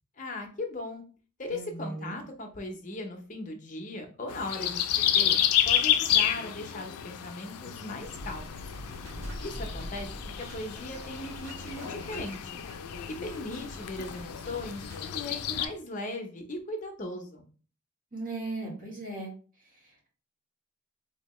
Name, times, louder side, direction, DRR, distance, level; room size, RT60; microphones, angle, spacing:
voice 1, 0.2-1.0 1.4-5.4 5.7-8.7 9.4-10.1 10.4-12.6 13.1-17.4, left 2 dB, 35° left, 3 dB, 0.6 m, -38 dB
voice 2, 1.5-2.2 18.1-19.3 19.6-20.1, right 2 dB, 40° right, -4 dB, 1.6 m, -38 dB
sound 1, 4.3-15.7, left 10 dB, 85° left, 0.4 m, -30 dB
sound 2, 8.0-15.7, equal, 60° right, 1.9 m, -44 dB
3.6 x 2.7 x 3.0 m, 0.38 s
head